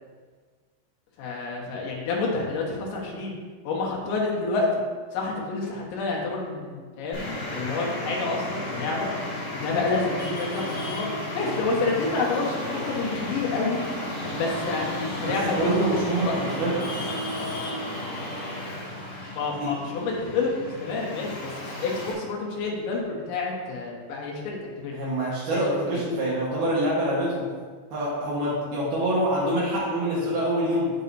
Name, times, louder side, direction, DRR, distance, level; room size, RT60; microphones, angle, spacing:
voice 1, 1.2-3.3 3.7-4.7 5.1-7.2 7.5-9.1 9.5-11.1 11.3-13.8 14.4-16.3 19.4-25.0 25.5-25.6 25.9-26.0, left 3 dB, 90° left, -2 dB, 3.8 m, -28 dB
Traffic noise roadway noise, 7.1-22.1, left 1 dB, 30° left, 2.7 m, -33 dB
voice 2, 15.2-17.0 19.5-19.7 24.9-27.4 27.9-30.9, right 1 dB, 65° right, -7 dB, 3.1 m, -26 dB
15.5 x 5.4 x 2.7 m, 1.5 s
omnidirectional pair, 5.0 m